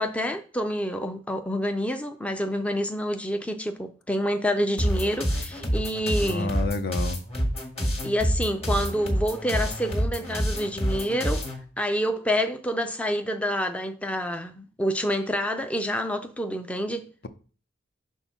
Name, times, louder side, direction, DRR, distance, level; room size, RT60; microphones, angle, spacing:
voice 1, 0.0-6.5 8.0-11.4 11.8-17.1, equal, 5° left, 0.4 m, -28 dB
sound 1, 4.8-11.6, equal, 30° left, 1.7 m, -27 dB
voice 2, 6.2-7.2, left 3 dB, 55° left, 0.7 m, -29 dB
6.2 x 3.5 x 5.7 m
head